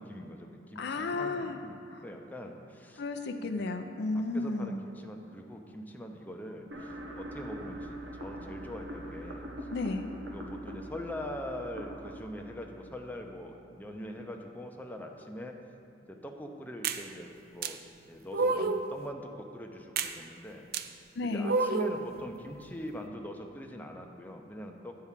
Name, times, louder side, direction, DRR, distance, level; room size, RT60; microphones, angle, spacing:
voice 1, 0.0-1.7 2.0-3.0 3.4-3.8 4.1-9.5 10.3-15.6 16.1-17.8 18.1-20.6 21.2-25.0, equal, 10° left, 2 dB, 0.7 m, -43 dB
voice 2, 0.8-1.6 1.9-2.0 3.0-4.8 9.7-10.1 21.2-21.5, left 3 dB, 65° left, 7 dB, 0.5 m, -33 dB
sound 1, 6.7-13.7, right 1 dB, 80° right, 1.3 m, -43 dB
sound 2, 16.8-17.0 17.6-17.7 18.3-18.9 20.0-20.1 20.7-20.9 21.4-22.0, right 3 dB, 55° right, 0.5 m, -29 dB
9.7 x 4.7 x 7.4 m, 2.8 s
head